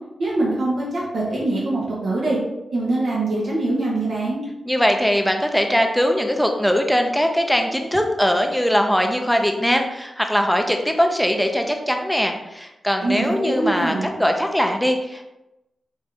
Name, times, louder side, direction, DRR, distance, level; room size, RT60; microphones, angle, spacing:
voice 1, 0.2-2.4 2.7-4.4 13.0-14.1, right 2 dB, 75° right, -5 dB, 1.1 m, -23 dB
voice 2, 4.7-15.3, equal, ahead, 4 dB, 0.6 m, -21 dB
5.2 x 2.6 x 3.4 m, 0.94 s
cardioid pair, 60°, 0 cm